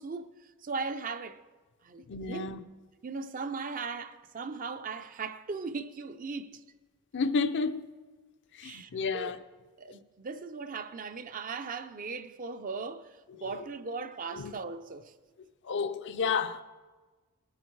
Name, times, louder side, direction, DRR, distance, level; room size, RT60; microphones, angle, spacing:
voice 1, 0.0-1.4 1.8-2.5 3.0-6.6 8.6-9.3 9.8-15.1, right 4 dB, 40° right, 0.5 m, -38 dB
voice 2, 2.1-2.6 7.1-7.8 8.5-9.4 14.3-14.5 15.6-16.6, left 5 dB, 55° left, 0.6 m, -31 dB
19.5 x 8.1 x 4.6 m
head